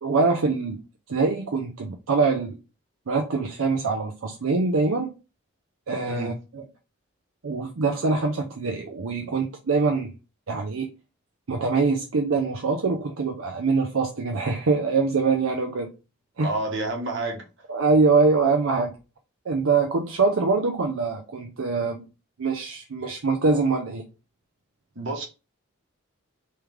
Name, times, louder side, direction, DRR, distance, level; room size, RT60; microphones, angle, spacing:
voice 1, 0.0-0.8 1.1-2.6 3.1-5.1 5.9-6.3 7.4-10.1 10.5-10.9 11.5-15.9 16.4-16.5 17.7-18.9 19.5-22.0 22.4-24.0, right 4 dB, 75° right, 0.5 m, -24 dB
voice 2, 16.4-17.4 24.9-25.3, right 2 dB, 55° right, 1.2 m, -29 dB
3.2 x 3.2 x 3.5 m
head